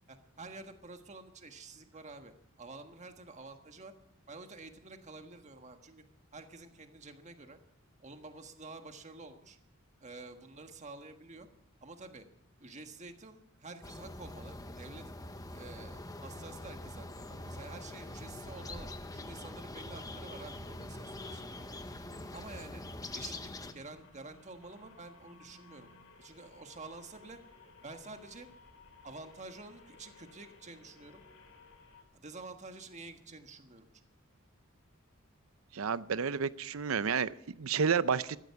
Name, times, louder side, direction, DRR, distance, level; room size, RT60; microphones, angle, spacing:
voice 1, 0.1-2.3 2.6-3.9 4.3-6.0 6.3-7.6 8.0-9.6 10.0-11.5 11.8-12.2 12.6-15.1 15.5-21.9 22.3-22.8 23.1-25.9 26.2-27.4 27.8-28.5 29.0-31.2 32.1-33.9, right 3 dB, 35° right, 6 dB, 1.5 m, -49 dB
sound 1, 13.8-23.7, left 2 dB, 15° left, 0.9 m, -44 dB
sound 2, 20.1-32.0, left 3 dB, 80° left, 3.5 m, -59 dB
voice 2, 35.7-38.4, right 6 dB, 75° right, 16 dB, 0.6 m, -31 dB
14.5 x 13.0 x 6.9 m, 0.75 s
head